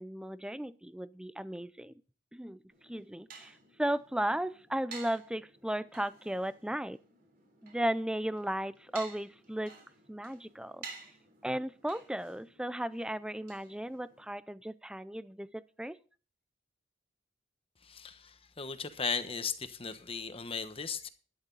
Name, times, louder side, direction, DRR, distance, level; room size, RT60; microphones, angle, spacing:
voice 1, 0.0-1.9 2.3-7.0 7.6-9.7 10.1-10.9 11.4-16.0, right 1 dB, 5° right, 0.4 m, -35 dB
sound 1, 2.7-14.3, right 4 dB, 50° right, 3.5 m, -53 dB
voice 2, 17.8-21.1, left 5 dB, 30° left, 1.0 m, -37 dB
12.5 x 10.5 x 3.9 m
head